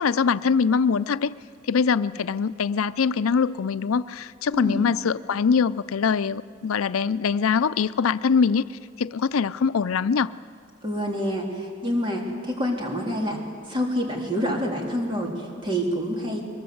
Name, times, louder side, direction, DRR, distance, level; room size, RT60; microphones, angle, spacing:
voice 1, 0.0-1.3 1.7-8.6 9.0-10.3, left 6 dB, 85° left, 15 dB, 0.5 m, -23 dB
voice 2, 10.8-13.4 13.7-16.4, equal, 25° right, -1 dB, 3.5 m, -27 dB
22.5 x 21.5 x 7.9 m, 2.1 s
head